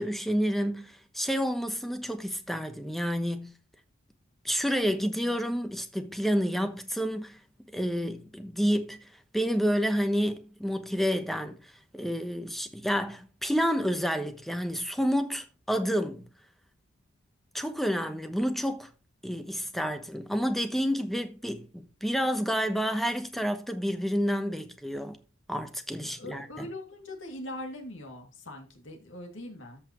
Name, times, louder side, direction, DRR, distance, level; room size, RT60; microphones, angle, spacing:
voice 1, 0.0-3.6 4.4-7.4 7.7-9.0 9.3-16.3 17.5-18.9 19.2-25.2 25.5-26.7, equal, ahead, 1.0 m, -29 dB
voice 2, 26.0-29.8, left 1 dB, 65° left, 2.6 m, -41 dB
13.5 x 5.7 x 3.1 m
head